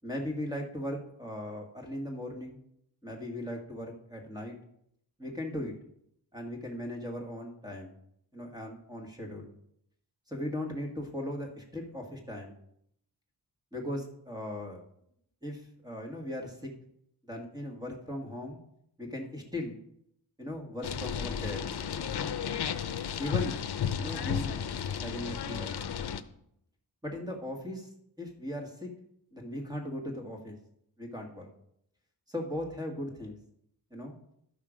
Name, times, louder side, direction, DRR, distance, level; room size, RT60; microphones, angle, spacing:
voice 1, 0.0-2.6 3.0-4.5 5.2-5.7 6.3-7.9 8.3-9.5 10.3-12.5 13.7-14.8 15.4-16.7 17.3-18.6 19.0-19.8 20.4-21.6 23.2-23.5 24.0-24.6 25.0-25.7 27.0-27.9 28.2-28.9 29.3-30.6 31.0-31.5 32.3-33.4 33.9-34.1, left 1 dB, 10° right, 2 dB, 1.8 m, -38 dB
sound 1, 20.8-26.2, left 7 dB, 70° left, 0.7 m, -33 dB
12.0 x 5.8 x 5.0 m, 0.74 s
wide cardioid pair, 120°, 41 cm